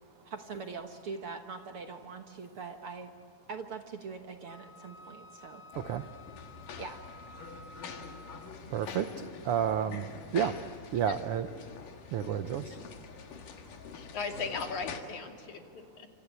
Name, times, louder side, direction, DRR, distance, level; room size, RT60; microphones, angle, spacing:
voice 1, 0.2-3.1 3.5-5.6 6.8-7.0, right 4 dB, 55° right, 5 dB, 1.8 m, -42 dB
Wind instrument woodwind instrument, 4.5-8.7, left 2 dB, 25° right, 2.0 m, -53 dB
sound 1, 5.7-15.0, left 6 dB, 85° left, 3.4 m, -45 dB
voice 2, 8.7-10.6 10.9-11.5 12.1-12.8, right 9 dB, 80° right, 10 dB, 1.2 m, -31 dB
voice 3, 13.9-16.1, left 4 dB, 65° left, 3 dB, 3.9 m, -38 dB
27.5 x 26.0 x 8.4 m, 2.3 s
omnidirectional pair, 3.7 m